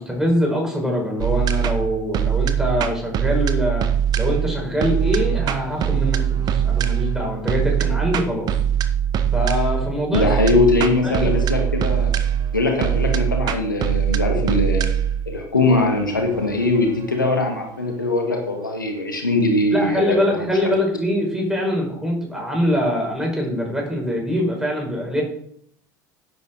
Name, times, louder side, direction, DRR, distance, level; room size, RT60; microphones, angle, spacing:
voice 1, 0.0-3.9 4.2-6.2 6.5-8.5 9.3-10.6 10.8-11.3 19.7-25.2, left 1 dB, 5° right, -1 dB, 5.9 m, -23 dB
sound 1, 1.2-18.3, right 9 dB, 40° right, 1.1 m, -22 dB
voice 2, 10.1-12.1 12.5-14.8 15.3-20.7, left 2 dB, 80° left, 2 dB, 2.0 m, -21 dB
11.0 x 9.3 x 4.8 m, 0.66 s
figure-of-eight pair, 70°, 10 cm